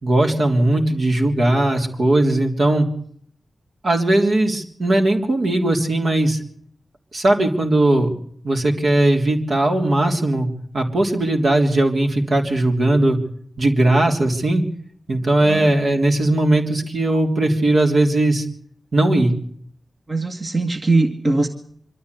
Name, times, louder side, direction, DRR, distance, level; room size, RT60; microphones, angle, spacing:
voice 1, 0.0-2.9 3.8-6.4 7.1-8.1 8.4-10.5 10.7-13.2 13.6-14.6 15.1-18.4 18.9-19.3, right 1 dB, 65° right, 2 dB, 3.4 m, -18 dB
voice 2, 20.1-21.5, right 2 dB, 45° right, 5 dB, 1.9 m, -20 dB
24.0 x 13.0 x 8.3 m, 0.65 s
cardioid pair, 45°, 0 cm